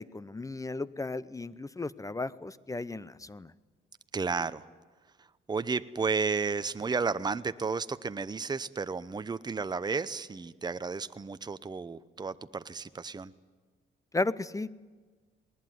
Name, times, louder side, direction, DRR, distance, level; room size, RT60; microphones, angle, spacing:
voice 1, 0.0-3.5 14.1-14.8, left 2 dB, 15° left, 19 dB, 0.7 m, -35 dB
voice 2, 4.1-4.6 5.5-13.3, right 4 dB, 20° right, 13 dB, 0.8 m, -32 dB
20.0 x 19.5 x 9.4 m, 1.4 s
cardioid pair, 90°, 20 cm